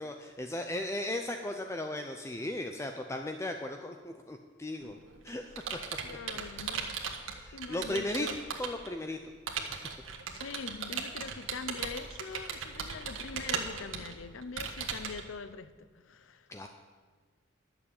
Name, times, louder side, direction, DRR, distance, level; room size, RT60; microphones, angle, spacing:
voice 1, 0.0-5.0 5.2-5.5 7.4-8.3 8.6-9.2 9.7-9.9 16.5-16.7, left 1 dB, 15° left, 5 dB, 0.5 m, -36 dB
Computer keyboard, 4.8-8.9 9.5-15.2, right 6 dB, 85° right, 1.4 m, -37 dB
voice 2, 6.0-7.2 7.5-8.4 10.3-16.5, left 5 dB, 80° left, 13 dB, 0.6 m, -43 dB
11.5 x 6.9 x 8.6 m, 1.5 s
head